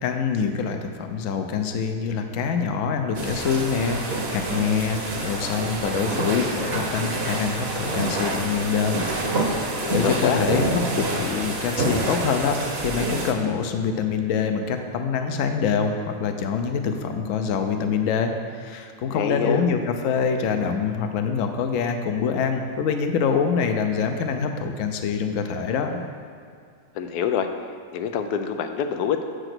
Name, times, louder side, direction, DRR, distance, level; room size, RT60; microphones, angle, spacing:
voice 1, 0.0-26.0, left 6 dB, 65° left, 6 dB, 1.0 m, -25 dB
sound 1, 3.1-13.3, right 2 dB, 45° right, 1.1 m, -27 dB
voice 2, 9.8-10.4 19.1-19.7 27.0-27.5 27.9-29.2, left 8 dB, 85° left, 7 dB, 1.2 m, -26 dB
7.6 x 5.0 x 6.0 m, 2.3 s
omnidirectional pair, 1.6 m